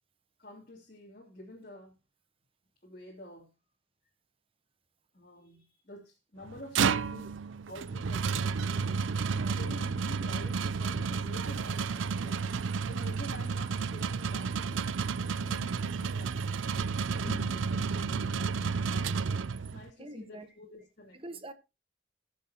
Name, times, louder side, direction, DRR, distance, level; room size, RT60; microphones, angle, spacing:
voice 1, 0.4-1.9 2.8-3.5 5.1-7.3 7.7-9.1 9.5-12.5 12.9-14.8 15.2-16.4 16.9-18.5 18.8-21.4, left 1 dB, 45° left, 2.8 m, -49 dB
sound 1, 6.4-19.9, right 5 dB, 80° right, 0.5 m, -31 dB
voice 2, 9.3-9.8 17.2-17.5 20.0-20.5 21.1-21.5, equal, 30° right, 1.0 m, -43 dB
19.5 x 7.2 x 2.9 m
head